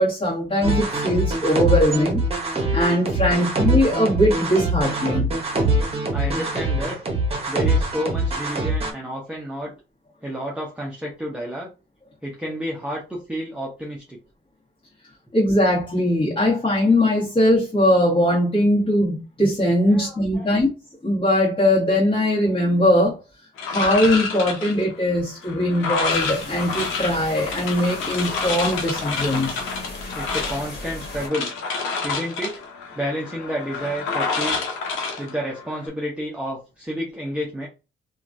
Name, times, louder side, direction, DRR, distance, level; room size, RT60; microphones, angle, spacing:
voice 1, 0.0-2.2 2.7-5.3 15.3-20.7 21.0-23.2 23.6-29.6, left 1 dB, 25° left, 1.5 m, -20 dB
sound 1, 0.6-8.9, right 1 dB, 30° right, 1.0 m, -23 dB
voice 2, 6.1-7.0 7.5-9.7 10.2-11.7 12.2-14.2 19.9-20.5 30.1-31.5 32.0-32.5 32.9-34.7 35.2-37.7, equal, 5° right, 0.8 m, -30 dB
sound 2, 23.6-35.9, left 4 dB, 90° left, 0.9 m, -29 dB
sound 3, 26.1-31.3, left 2 dB, 50° left, 1.5 m, -36 dB
2.9 x 2.4 x 2.6 m
cardioid pair, 90°, 20 cm